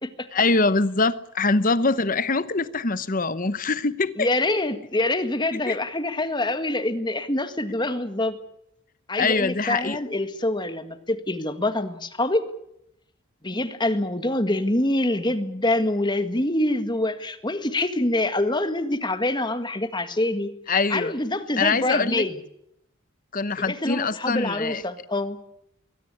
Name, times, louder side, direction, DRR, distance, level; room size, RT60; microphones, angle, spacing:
voice 1, 0.3-4.3 5.7-5.8 9.2-10.0 20.7-21.1 21.6-22.2 23.3-24.8, left 3 dB, 40° left, 16 dB, 1.0 m, -23 dB
voice 2, 4.2-8.4 9.1-12.5 13.4-20.5 20.9-22.3 23.6-25.4, left 1 dB, 20° left, 10 dB, 1.7 m, -25 dB
22.5 x 18.0 x 9.8 m, 0.76 s
head